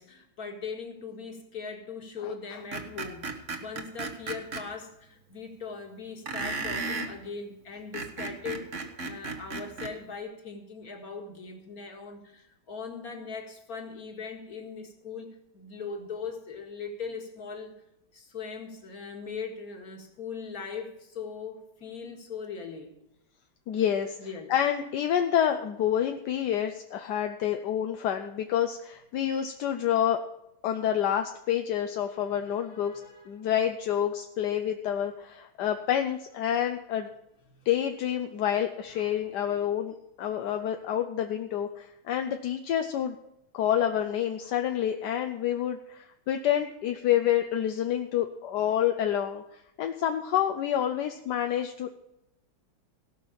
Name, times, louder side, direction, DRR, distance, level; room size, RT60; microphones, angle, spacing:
voice 1, 0.0-8.7 9.0-17.7 18.1-23.0 24.2-24.5 32.1-33.3 37.5-37.7 38.9-39.2, left 5 dB, 45° left, 3 dB, 2.3 m, -40 dB
voice 2, 2.2-2.6 23.7-24.2 24.5-30.2 30.6-32.9 33.3-37.1 37.7-43.1 43.5-49.4 49.8-51.9, left 10 dB, 65° left, 6 dB, 1.2 m, -28 dB
Screech, 2.7-4.6 6.3-7.1 7.8-9.9, right 3 dB, 40° right, 1.4 m, -34 dB
17.5 x 6.0 x 7.1 m, 0.85 s
omnidirectional pair, 2.2 m